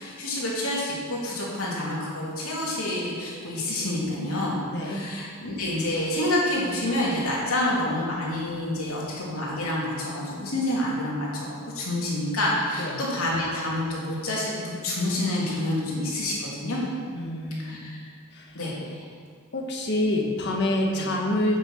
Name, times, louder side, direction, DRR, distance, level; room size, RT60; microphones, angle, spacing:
voice 1, 0.0-16.8 17.6-17.9 18.5-19.0 20.9-21.0, left 1 dB, 75° left, -5 dB, 3.2 m, -28 dB
voice 2, 4.7-5.0 12.8-13.0 17.1-17.8 18.3-18.6 19.5-21.6, left 1 dB, 50° left, 0 dB, 1.6 m, -27 dB
8.6 x 7.8 x 6.6 m, 2.1 s
head